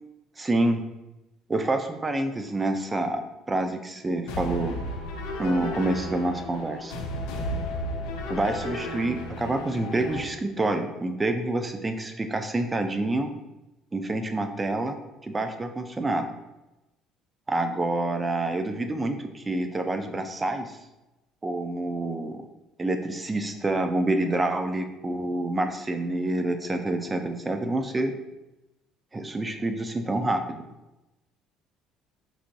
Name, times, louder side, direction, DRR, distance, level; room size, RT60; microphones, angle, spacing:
voice 1, 0.4-0.8 1.5-3.2 3.5-4.8 5.4-6.9 8.3-13.3 13.9-15.0 15.2-16.3 17.5-20.8 21.4-22.5 22.8-28.1 29.1-30.6, right 2 dB, 20° right, 7 dB, 0.4 m, -27 dB
sound 1, 4.3-10.2, left 1 dB, 90° left, 0.4 m, -33 dB
4.6 x 2.9 x 2.6 m, 0.99 s
cardioid pair, 100°, 0 cm